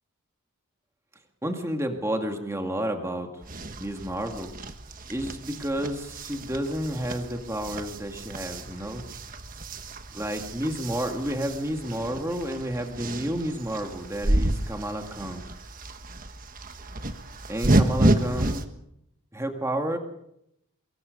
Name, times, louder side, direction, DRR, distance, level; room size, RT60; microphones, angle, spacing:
voice 1, 1.4-3.3 3.8-4.5 5.1-9.0 10.1-15.4 17.5-18.6 19.3-20.0, right 1 dB, 10° right, 4 dB, 2.2 m, -30 dB
sound 1, 3.4-18.7, right 1 dB, 40° right, 1.4 m, -30 dB
24.5 x 22.0 x 5.4 m, 0.78 s
head